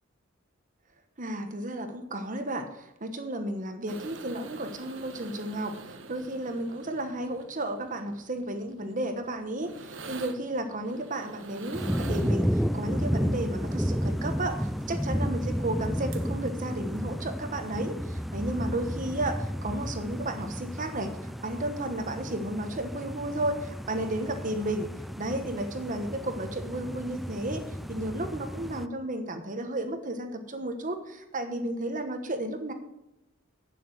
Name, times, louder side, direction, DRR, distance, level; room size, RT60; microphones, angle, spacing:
voice 1, 1.2-24.9 25.2-27.6 27.9-32.7, right 1 dB, 40° right, 6 dB, 1.2 m, -33 dB
sound 1, 3.9-12.9 15.8-15.9 16.1-16.5 17.0-17.1, right 3 dB, 65° right, 1.2 m, -46 dB
sound 2, 11.7-28.9, equal, ahead, 0.3 m, -32 dB
8.6 x 7.4 x 7.6 m, 0.89 s
head